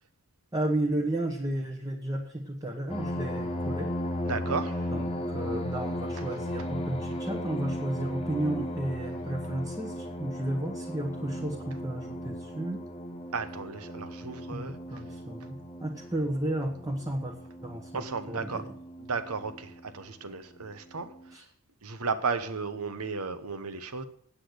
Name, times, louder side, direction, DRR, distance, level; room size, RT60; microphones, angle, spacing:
voice 1, 0.5-3.9 4.9-12.8 14.5-17.3 17.6-18.6 21.3-21.4, right 1 dB, 15° right, -1 dB, 1.2 m, -33 dB
sound 1, 2.9-19.9 20.6-20.7 21.1-21.3, equal, 25° left, 1.2 m, -36 dB
voice 2, 4.3-4.8 13.3-14.7 17.9-18.6 19.0-21.1 21.8-24.0, right 4 dB, 80° right, 10 dB, 1.1 m, -34 dB
8.6 x 8.4 x 8.0 m, 0.65 s
head